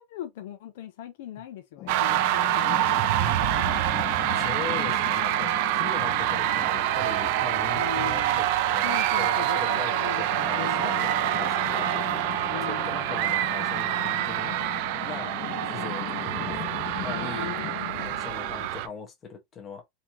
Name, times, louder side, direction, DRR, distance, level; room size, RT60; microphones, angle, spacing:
voice 1, 0.0-3.7 7.8-8.5 8.8-11.5 12.5-13.4 17.1-18.2, left 11 dB, 70° left, 0.7 m, -40 dB
sound 1, 1.8-18.7, left 15 dB, 35° left, 0.4 m, -39 dB
sound 2, 1.9-18.9, right 14 dB, 55° right, 0.4 m, -26 dB
voice 2, 4.4-8.5 8.7-9.9 10.2-11.9 12.5-14.5 15.0-15.3 15.6-16.6 17.0-17.5 17.9-19.8, left 5 dB, 20° left, 1.2 m, -40 dB
4.2 x 2.8 x 2.8 m
supercardioid pair, 160°, 0 cm